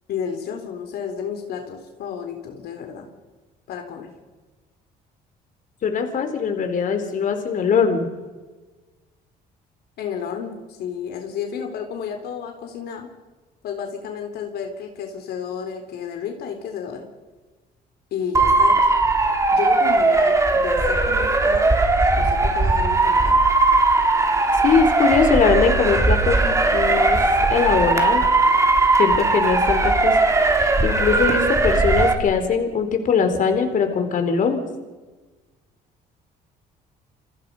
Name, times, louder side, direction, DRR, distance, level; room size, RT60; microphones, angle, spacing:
voice 1, 0.1-3.1 3.7-4.1 10.0-13.1 13.6-17.0 18.1-18.8 19.5-21.6 22.2-23.4, left 7 dB, 70° left, 4 dB, 3.8 m, -31 dB
voice 2, 5.8-8.1 24.6-27.2 27.5-28.2 29.0-30.1 30.6-34.6, left 6 dB, 50° left, 7 dB, 4.3 m, -21 dB
Motor vehicle (road) / Siren, 18.3-32.1, right 3 dB, 20° right, 3.4 m, -18 dB
29.0 x 25.5 x 5.6 m, 1.3 s
cardioid pair, 110°, 17 cm